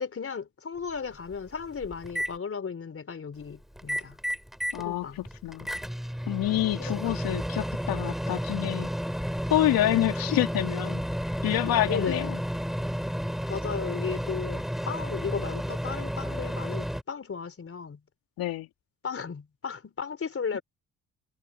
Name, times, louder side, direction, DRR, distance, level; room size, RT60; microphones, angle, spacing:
voice 1, 0.0-4.2 4.8-5.2 6.5-7.3 11.9-12.4 13.5-18.0 19.0-20.6, left 6 dB, 40° left, 4.2 m, -35 dB
Microwave oven, 0.8-0.9 1.3-2.3 3.8-4.9 5.2-17.0, equal, ahead, 7.7 m, -32 dB
voice 2, 4.7-5.7 6.3-8.9 9.5-11.0 11.4-12.4 18.4-18.7, left 13 dB, 70° left, 3.3 m, -27 dB
supercardioid pair, 60°, 35 cm